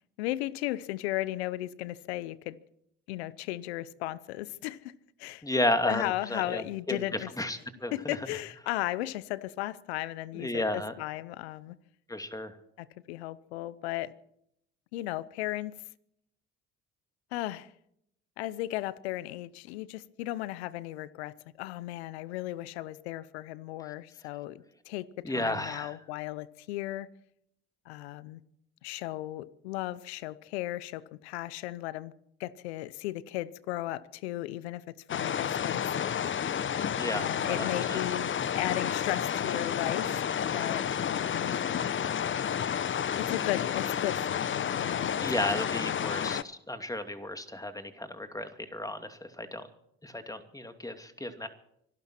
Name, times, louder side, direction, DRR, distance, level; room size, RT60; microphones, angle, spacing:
voice 1, 0.2-2.6 3.1-4.9 5.2-5.4 5.8-7.3 7.9-11.8 12.8-14.1 14.9-15.8 17.3-17.7 18.4-27.1 27.9-28.4 28.8-32.1 32.4-35.8 37.1-41.5 43.2-45.1 45.8-46.1, left 16 dB, 85° left, 0.8 m, -36 dB
voice 2, 5.4-6.6 6.9-7.0 7.4-8.2 10.3-10.9 12.1-12.5 25.2-26.0 37.0-38.0 45.2-49.7 50.0-51.5, left 1 dB, 10° left, 2.7 m, -33 dB
sound 1, 35.1-46.4, left 8 dB, 40° left, 0.9 m, -30 dB
25.5 x 12.0 x 4.4 m
hypercardioid pair, 60°, 32 cm